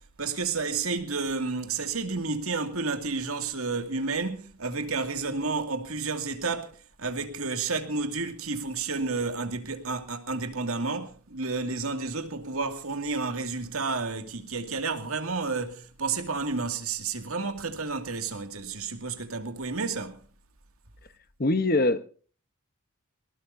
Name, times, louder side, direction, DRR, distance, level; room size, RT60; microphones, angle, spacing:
voice 1, 0.2-6.7 7.0-20.2, right 4 dB, 75° right, 2.4 m, -31 dB
voice 2, 21.4-22.1, left 2 dB, 40° left, 1.1 m, -23 dB
23.5 x 19.0 x 2.7 m
head